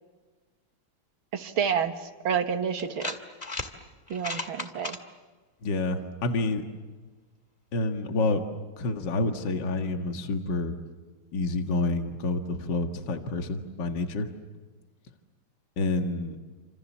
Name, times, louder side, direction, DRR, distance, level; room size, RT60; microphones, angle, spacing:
voice 1, 1.3-1.9 2.2-3.1 4.1-5.0, right 7 dB, 70° right, 5 dB, 2.3 m, -28 dB
sound 1, 2.0-2.1 2.8-3.7 4.1-5.0, left 2 dB, 20° left, 1.8 m, -34 dB
voice 2, 5.6-6.6 7.7-8.4 8.8-10.8 11.3-14.3 15.8-16.4, left 2 dB, 55° left, 5 dB, 2.3 m, -28 dB
30.0 x 26.5 x 7.4 m, 1.3 s
omnidirectional pair, 2.4 m